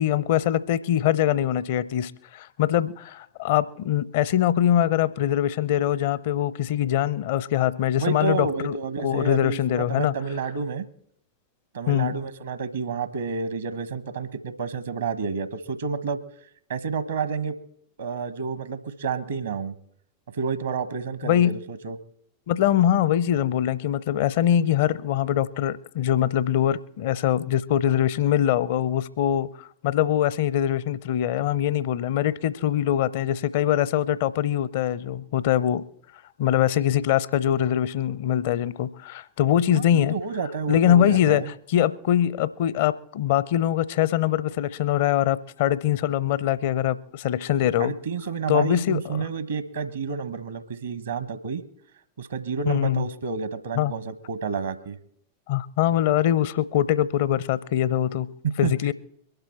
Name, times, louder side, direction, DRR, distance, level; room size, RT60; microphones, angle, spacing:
voice 1, 0.0-8.8 9.0-10.1 11.9-12.2 21.2-21.6 22.5-29.5 29.8-35.8 36.4-40.1 40.7-47.9 48.5-49.0 52.7-53.0 53.8-53.9 55.5-58.3 58.6-58.9, left 11 dB, 50° left, 0.6 m, -23 dB
voice 2, 8.0-10.8 11.7-16.2 16.7-17.5 18.0-19.7 20.3-22.0 39.7-41.5 47.8-51.6 52.2-55.0 58.4-58.7, right 5 dB, 70° right, 1.0 m, -30 dB
22.5 x 12.0 x 4.3 m
figure-of-eight pair, 90°, 0 cm